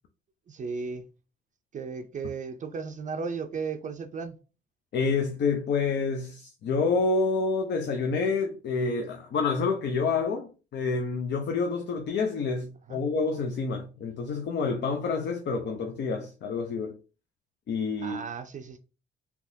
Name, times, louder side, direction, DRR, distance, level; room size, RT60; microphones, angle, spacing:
voice 1, 0.5-1.1 1.7-4.4 12.9-13.0 18.0-18.8, right 5 dB, 40° right, 0.4 m, -35 dB
voice 2, 4.9-17.0 17.7-18.2, left 4 dB, 60° left, 0.6 m, -28 dB
3.5 x 2.9 x 2.7 m
cardioid pair, 90°, 20 cm